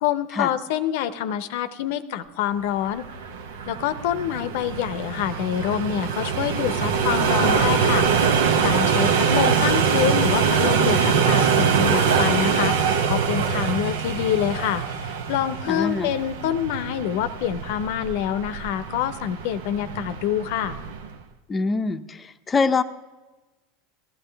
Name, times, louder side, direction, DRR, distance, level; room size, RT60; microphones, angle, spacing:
voice 1, 0.0-3.0 3.7-20.8, left 10 dB, 70° left, 13 dB, 0.7 m, -26 dB
sound 1, 2.8-21.1, right 6 dB, 80° right, 0.8 m, -23 dB
voice 2, 15.7-16.1 21.5-22.8, left 4 dB, 25° left, 11 dB, 0.6 m, -24 dB
15.5 x 13.0 x 3.4 m, 1.2 s
hypercardioid pair, 90°, 0 cm